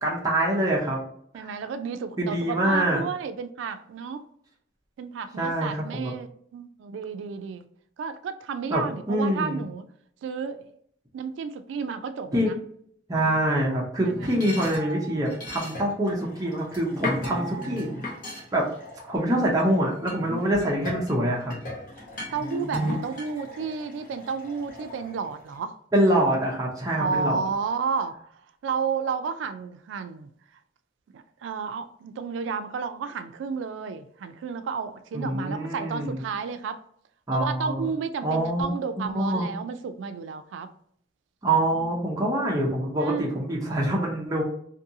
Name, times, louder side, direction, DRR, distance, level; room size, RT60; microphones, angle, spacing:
voice 1, 0.0-1.0 2.2-3.0 5.4-6.1 8.7-8.8 9.1-9.6 12.3-12.5 13.1-17.9 18.5-18.7 19.1-21.5 25.9-27.4 35.1-36.2 37.3-37.9 38.2-39.5 41.4-44.4, right 1 dB, 20° right, 0.5 m, -25 dB
voice 2, 1.3-4.2 5.0-7.7 8.0-9.9 10.2-10.7 11.1-12.6 13.1-13.4 14.0-14.3 22.3-25.8 26.9-30.3 31.1-36.8 37.3-40.7 41.8-42.0 43.0-43.4, right 5 dB, 80° right, 0.3 m, -32 dB
sound 1, 14.0-19.6 20.1-25.6, left 1 dB, 45° left, 0.9 m, -36 dB
2.6 x 2.6 x 2.6 m
head